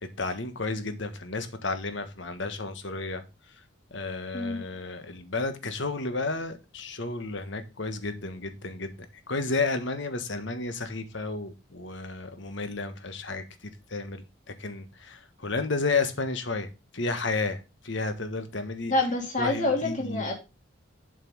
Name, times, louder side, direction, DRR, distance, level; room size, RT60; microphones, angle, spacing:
voice 1, 0.0-3.6 3.9-8.9 9.3-18.9 19.4-20.2, left 3 dB, 60° left, 1.4 m, -32 dB
voice 2, 18.9-20.3, left 2 dB, 35° left, 3.1 m, -27 dB
7.6 x 5.5 x 5.4 m
head